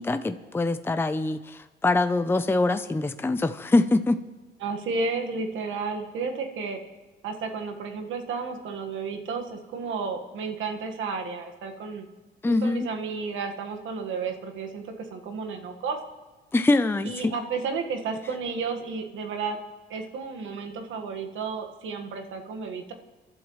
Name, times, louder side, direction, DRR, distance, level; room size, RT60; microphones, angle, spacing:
voice 1, 0.0-4.2 12.4-12.9 16.5-17.3, left 2 dB, 10° left, 10 dB, 0.6 m, -24 dB
voice 2, 4.6-6.8 7.2-12.1 12.5-16.0 17.0-19.6 19.9-22.9, right 4 dB, 80° right, 4 dB, 1.6 m, -32 dB
28.0 x 11.5 x 3.1 m, 1.3 s
cardioid pair, 90°, 20 cm